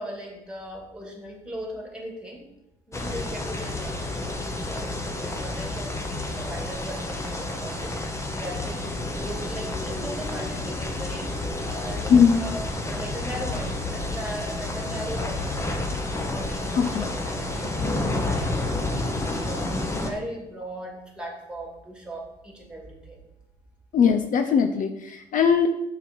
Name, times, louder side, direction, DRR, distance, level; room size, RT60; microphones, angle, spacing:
voice 1, 0.0-2.4 2.9-7.9 8.3-15.8 16.3-23.2, right 1 dB, 5° right, 0 dB, 2.2 m, -38 dB
sound 1, 2.9-20.1, left 2 dB, 15° left, 1.1 m, -30 dB
voice 2, 12.1-12.4 16.8-17.0 23.9-25.7, left 7 dB, 50° left, 7 dB, 0.6 m, -20 dB
6.7 x 4.7 x 6.1 m, 0.87 s
cardioid pair, 110°, 17 cm